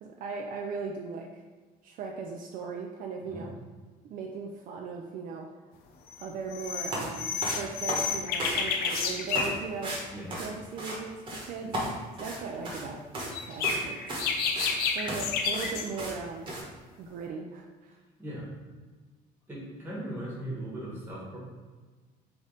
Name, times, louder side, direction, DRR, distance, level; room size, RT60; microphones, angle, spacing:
voice 1, 0.0-1.4 1.8-3.5 4.0-5.5 6.2-9.9 10.4-11.2 11.4-11.7 12.2-13.0 13.4-14.2 14.9-16.5 17.0-18.0, right 4 dB, 55° right, 1 dB, 0.5 m, -38 dB
sound 1, 6.1-6.2 6.5-9.6 13.2-15.9, left 5 dB, 75° left, 0.6 m, -30 dB
sound 2, 6.9-7.1 7.4-8.6 8.8-9.0 9.3-9.5 9.8-10.0 10.3-11.0 11.3-11.5 11.7-12.8 13.1-13.3 13.6-13.8 14.1-14.7 15.1-15.2 15.5-15.7 16.0-16.1 16.5-16.6, right 1 dB, 30° right, 1.2 m, -34 dB
voice 2, 19.5-21.4, right 1 dB, 15° right, -5 dB, 1.4 m, -38 dB
3.9 x 3.5 x 3.9 m, 1.4 s
cardioid pair, 145°, 16 cm